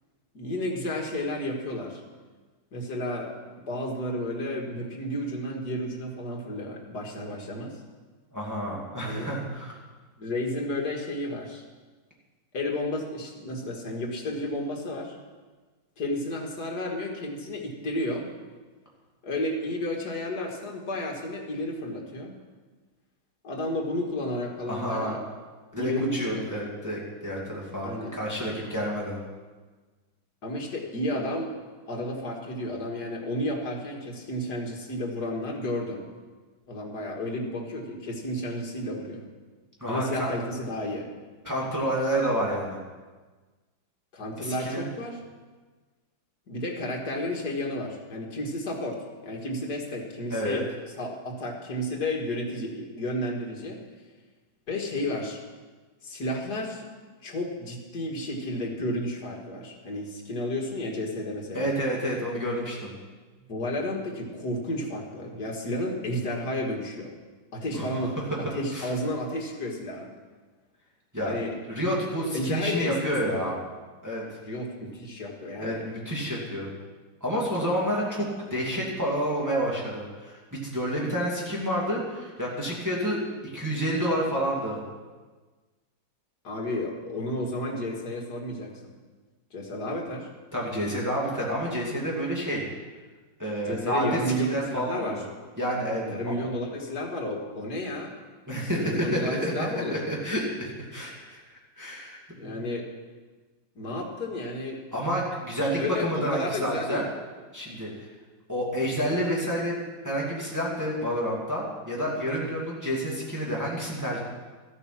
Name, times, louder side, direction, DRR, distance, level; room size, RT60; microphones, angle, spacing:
voice 1, 0.3-2.0 2.7-3.3 3.7-7.8 9.0-9.3 10.2-11.6 12.5-15.2 16.0-18.3 19.2-22.3 23.4-25.2 25.7-26.5 27.8-28.2 30.4-31.5 31.9-36.0 36.7-39.2 39.9-41.1 44.1-45.2 46.5-50.7 51.0-53.8 54.7-55.4 56.0-56.8 57.2-61.7 63.5-67.1 67.5-68.2 68.5-70.1 71.2-71.6 72.3-73.5 74.4-75.9 86.4-88.9 89.5-90.3 93.6-95.2 96.0-98.1 98.7-100.0 102.3-102.9 103.8-104.8 105.6-107.1, left 1 dB, 55° left, 1 dB, 2.3 m, -32 dB
voice 2, 8.3-9.8 24.7-25.1 25.7-29.2 39.8-40.3 41.4-42.8 44.4-44.9 50.3-50.6 61.5-62.9 67.7-67.8 68.7-68.9 71.1-71.3 71.7-73.6 74.0-74.2 75.6-76.7 77.2-83.2 83.5-84.8 90.5-92.6 93.4-95.2 95.6-96.3 98.5-99.5 99.9-102.6 104.9-107.0 107.5-107.9 108.5-109.8 110.0-114.2, equal, 10° right, -5 dB, 2.5 m, -29 dB
14.0 x 8.7 x 6.0 m, 1.3 s
omnidirectional pair, 2.1 m